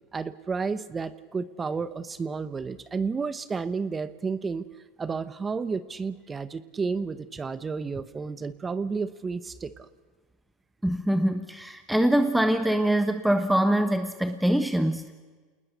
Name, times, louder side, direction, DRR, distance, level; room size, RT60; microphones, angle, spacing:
voice 1, 0.1-4.7 5.0-9.9, right 5 dB, 20° right, 14 dB, 1.1 m, -31 dB
voice 2, 10.8-15.1, right 1 dB, ahead, 7 dB, 1.3 m, -24 dB
28.0 x 20.0 x 6.8 m, 1.4 s
supercardioid pair, 115°, 0 cm